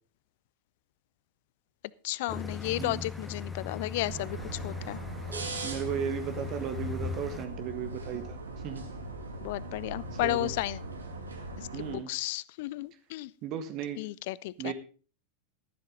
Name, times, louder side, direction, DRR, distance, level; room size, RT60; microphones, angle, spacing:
voice 1, 2.0-5.0 9.4-10.8 11.6-13.3 14.0-14.7, left 18 dB, 50° left, 22 dB, 0.5 m, -33 dB
sound 1, 2.3-7.5, left 4 dB, 5° left, 1.3 m, -39 dB
sound 2, 4.0-12.0, right 1 dB, 75° right, 2.3 m, -40 dB
voice 2, 5.6-8.9 10.2-10.5 11.7-12.1 13.4-14.1 14.6-14.7, right 8 dB, 40° right, 9 dB, 1.3 m, -35 dB
13.5 x 11.5 x 3.9 m, 0.39 s
figure-of-eight pair, 90°, 0 cm